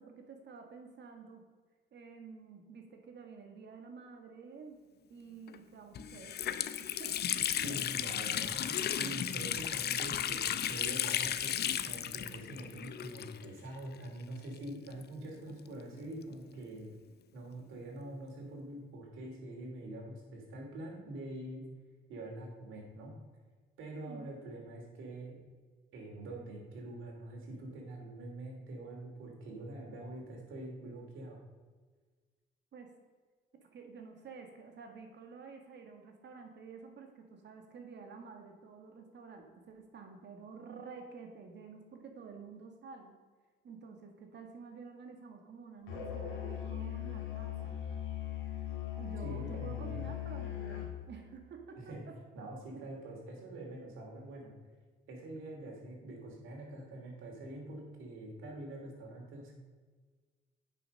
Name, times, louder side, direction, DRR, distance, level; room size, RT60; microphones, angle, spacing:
voice 1, 0.0-1.5 1.9-4.8 5.1-6.4 6.8-8.2 24.0-24.3 32.7-32.9 33.6-43.2 43.6-47.8 49.0-52.2, right 5 dB, 60° right, 4 dB, 1.8 m, -50 dB
Water tap faucet, 5.5-5.6 5.9-13.7 13.9-14.0 14.9-16.4, left 10 dB, 55° left, 0.5 m, -35 dB
voice 2, 7.6-16.9 17.3-21.7 22.1-23.2 23.8-25.4 25.9-31.4 49.2-50.1 51.8-52.0 52.3-54.5 55.1-59.5, right 1 dB, 85° right, 0 dB, 2.7 m, -45 dB
Musical instrument, 45.9-51.0, left 11 dB, 85° left, 2.0 m, -39 dB
9.1 x 6.0 x 5.4 m, 1.4 s
cardioid pair, 90°, 20 cm